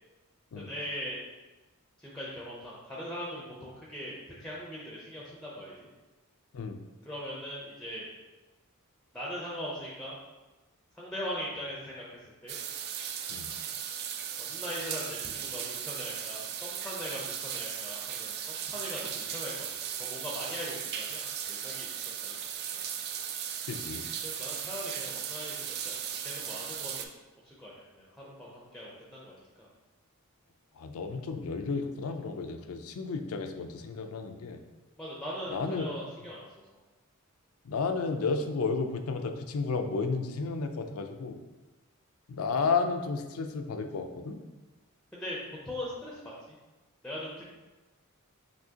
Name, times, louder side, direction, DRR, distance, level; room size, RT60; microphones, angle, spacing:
voice 1, 0.6-1.2 2.0-5.7 7.1-8.1 9.1-10.2 11.0-12.0 12.4-12.6 14.4-19.7 20.0-22.4 22.7-22.8 24.2-26.0 26.2-27.1 27.4-29.7 35.0-36.5 45.1-45.4 45.6-46.6 47.0-47.4, equal, 5° left, -5 dB, 0.6 m, -40 dB
sound 1, 12.5-27.0, right 8 dB, 45° right, 0.3 m, -37 dB
voice 2, 23.7-24.1 30.8-34.6 35.5-35.9 37.6-41.4 42.3-44.4, left 4 dB, 70° left, 6 dB, 0.4 m, -32 dB
6.0 x 2.8 x 2.8 m, 1.1 s
head